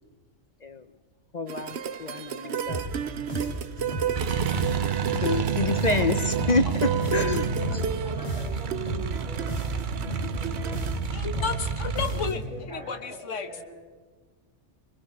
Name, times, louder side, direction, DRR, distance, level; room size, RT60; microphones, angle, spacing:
voice 1, 1.3-2.9 4.0-4.1 5.2-7.5, left 3 dB, 40° left, 11 dB, 0.8 m, -28 dB
sound 1, 1.5-11.0, right 9 dB, 65° right, 1.0 m, -33 dB
sound 2, 2.7-12.6, right 1 dB, 25° left, 3.5 m, -34 dB
sound 3, 4.1-12.3, right 7 dB, 50° right, 0.8 m, -30 dB
voice 2, 7.5-11.5 12.3-13.0 13.3-13.6, equal, 5° right, -4 dB, 5.0 m, -43 dB
voice 3, 11.1-13.5, left 6 dB, 90° left, 9 dB, 1.6 m, -33 dB
23.5 x 23.0 x 4.9 m, 1.4 s
omnidirectional pair, 1.2 m